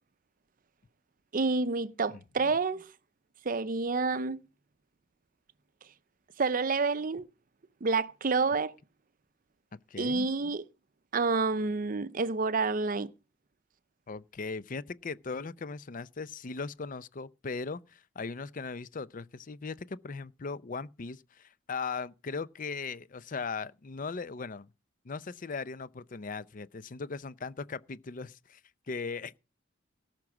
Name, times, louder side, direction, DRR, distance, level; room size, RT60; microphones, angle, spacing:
voice 1, 1.3-2.9 3.4-4.4 6.4-7.3 7.8-8.7 10.0-10.6 11.1-13.1, right 4 dB, 45° right, 0.5 m, -28 dB
voice 2, 2.1-2.5 9.9-10.3 14.1-24.7 25.0-28.6 28.9-29.4, left 4 dB, 40° left, 0.5 m, -38 dB
18.0 x 6.0 x 6.1 m
head